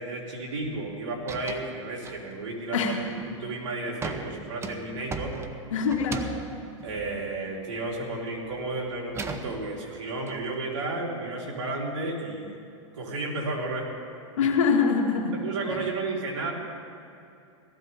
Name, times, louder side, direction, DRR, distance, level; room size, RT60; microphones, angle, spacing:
voice 1, 0.0-2.9 3.3-5.4 6.1-6.2 6.8-12.5 12.9-13.9 15.4-16.5, right 2 dB, 75° right, -3 dB, 3.6 m, -32 dB
sound 1, 0.6-0.9 1.2-1.7 2.1-2.6 3.0-3.4 4.0-8.0 8.4-10.4, right 4 dB, 15° right, 0.7 m, -38 dB
voice 2, 5.7-6.3 14.4-15.4 15.7-15.9, left 5 dB, 80° left, 1 dB, 2.1 m, -24 dB
18.0 x 14.0 x 3.5 m, 2.6 s
hypercardioid pair, 130°, 16 cm